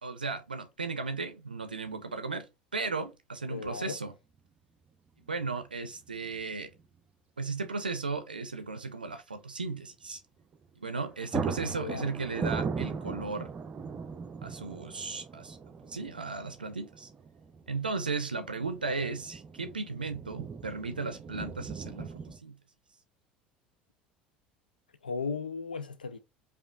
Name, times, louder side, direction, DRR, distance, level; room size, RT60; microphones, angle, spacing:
voice 1, 0.0-2.5 2.7-4.1 5.3-6.7 7.4-10.2 10.8-13.5 14.4-15.6 15.9-17.1 17.7-22.6, right 4 dB, 90° right, 0.5 m, -35 dB
voice 2, 3.5-4.0 11.7-12.1 25.0-26.2, left 5 dB, 85° left, 0.4 m, -36 dB
sound 1, 4.4-4.5 6.1-6.5 6.8-6.9 10.5-10.7 11.0-22.4, right 5 dB, 30° right, 0.5 m, -39 dB
5.1 x 2.4 x 2.2 m
figure-of-eight pair, 70°, 5 cm